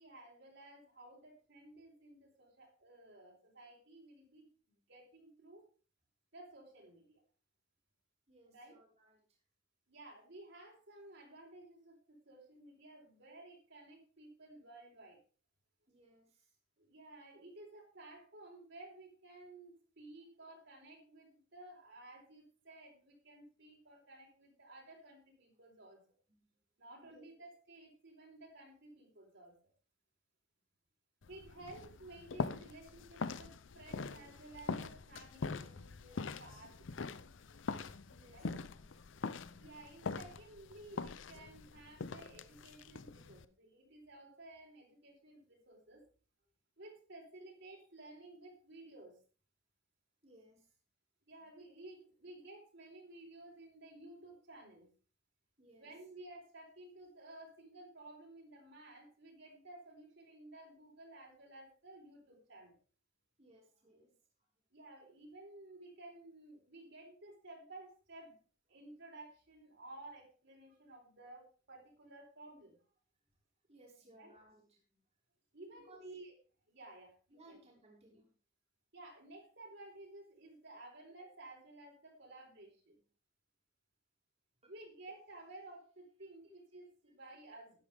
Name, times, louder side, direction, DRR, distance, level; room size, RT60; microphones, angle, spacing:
voice 1, 0.0-4.5 4.9-5.7 6.3-7.2 8.5-8.8 9.9-15.2 16.8-26.0 26.8-29.6 31.3-37.2 38.3-38.5 39.1-46.0 46.8-49.2 51.3-54.9 55.8-62.7 64.7-68.3 68.7-72.8 74.2-74.3 75.5-76.3 76.7-77.6 78.9-83.0 84.7-87.7, right 2 dB, 65° right, 0 dB, 4.2 m, -55 dB
voice 2, 8.3-9.2 15.9-16.6 26.3-26.5 27.0-27.3 38.0-38.9 50.2-50.7 55.6-55.9 63.4-64.1 73.7-74.8 75.7-76.1 77.3-78.3, right 1 dB, 35° right, -3 dB, 3.2 m, -63 dB
sound 1, 31.2-43.4, left 4 dB, 70° left, 0.6 m, -43 dB
12.5 x 10.0 x 3.5 m, 0.37 s
head